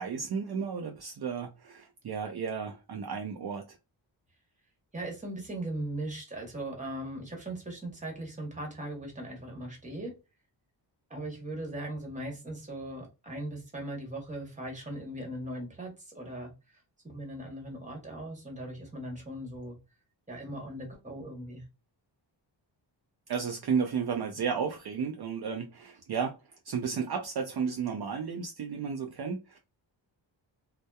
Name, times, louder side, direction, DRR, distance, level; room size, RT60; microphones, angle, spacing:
voice 1, 0.0-3.6 23.3-26.4 26.7-29.6, right 6 dB, 55° right, 0.5 m, -33 dB
voice 2, 4.9-10.1 11.1-16.5 17.0-19.8 20.3-21.6, right 1 dB, 15° right, 1.1 m, -39 dB
2.8 x 2.0 x 2.2 m
wide cardioid pair, 100°, 45 cm